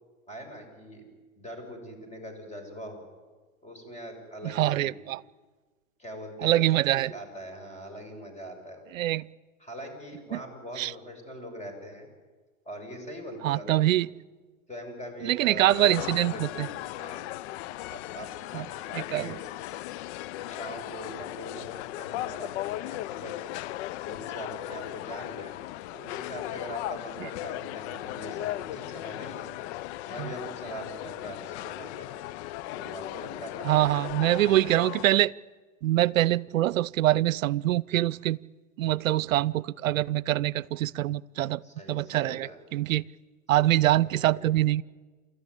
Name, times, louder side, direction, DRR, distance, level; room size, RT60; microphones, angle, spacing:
voice 1, 0.3-1.1 1.4-3.0 3.6-5.0 6.0-6.6 7.0-8.9 9.6-12.1 12.7-14.0 14.7-17.3 17.9-19.4 20.4-23.3 24.0-25.6 25.9-29.5 30.0-32.2 32.7-34.7 41.6-42.6 43.7-44.5, equal, 15° left, 5 dB, 7.1 m, -42 dB
voice 2, 4.4-5.2 6.4-7.1 8.9-9.3 10.3-10.4 10.8-10.9 13.4-14.1 15.2-16.7 18.5-18.7 18.9-19.4 30.2-30.3 33.6-35.3 35.8-38.4 38.8-41.6 41.9-43.0 43.5-44.8, right 14 dB, 85° right, 23 dB, 0.7 m, -24 dB
sound 1, 15.7-35.0, left 16 dB, 60° left, 0.6 m, -37 dB
29.0 x 14.0 x 9.8 m, 1.4 s
hypercardioid pair, 100°, 39 cm